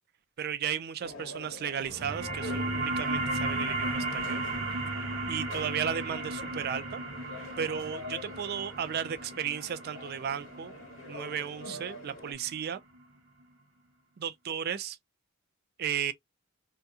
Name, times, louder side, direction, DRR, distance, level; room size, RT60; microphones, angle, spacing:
voice 1, 0.4-4.4 5.3-7.0 7.6-10.7 11.1-12.8 14.2-15.0 15.8-16.1, right 8 dB, 50° right, 0.3 m, -34 dB
sound 1, 1.0-12.3, left 2 dB, 65° left, 1.2 m, -46 dB
sound 2, 1.9-13.0, right 2 dB, 80° right, 0.8 m, -35 dB
2.7 x 2.2 x 2.2 m
head